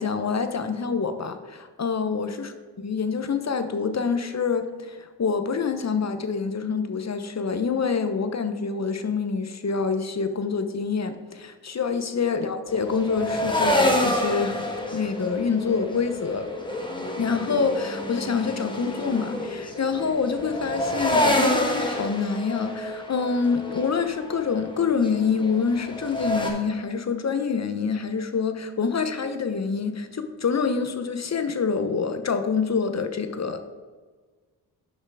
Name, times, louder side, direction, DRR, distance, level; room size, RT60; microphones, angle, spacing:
voice 1, 0.0-2.5 2.8-14.7 14.9-16.5 17.2-33.6, left 5 dB, 40° left, 9 dB, 0.9 m, -26 dB
sound 1, 12.7-26.5, left 1 dB, 10° left, 1.5 m, -28 dB
6.8 x 5.5 x 4.8 m, 1.4 s
supercardioid pair, 50°, 43 cm